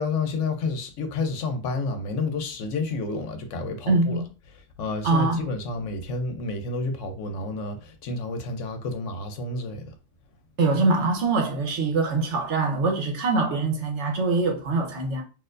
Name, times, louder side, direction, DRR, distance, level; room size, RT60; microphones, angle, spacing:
voice 1, 0.0-4.2 4.8-9.9, left 3 dB, 70° left, 1.0 m, -30 dB
voice 2, 3.9-4.2 5.0-5.5 10.6-15.2, right 3 dB, 65° right, 1.1 m, -23 dB
4.3 x 2.6 x 2.5 m
omnidirectional pair, 1.3 m